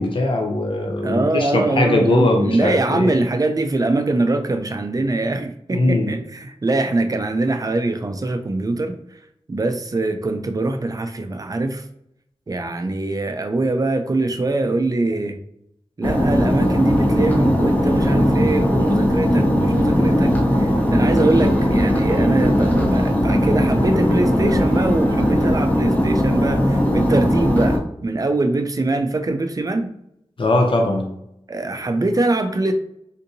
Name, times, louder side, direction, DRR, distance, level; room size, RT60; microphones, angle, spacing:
voice 1, 0.0-3.1 5.7-6.1 30.4-31.1, left 2 dB, 55° left, 2 dB, 0.6 m, -20 dB
voice 2, 1.0-9.0 9.5-11.8 12.5-15.4 16.0-29.9 31.5-32.7, right 2 dB, 35° right, 7 dB, 0.4 m, -23 dB
sound 1, 16.0-27.8, equal, 15° left, 0.7 m, -18 dB
sound 2, 20.8-23.1 23.4-25.9, right 2 dB, 80° right, 0.6 m, -31 dB
3.6 x 2.7 x 2.6 m, 0.76 s
wide cardioid pair, 85°, 11 cm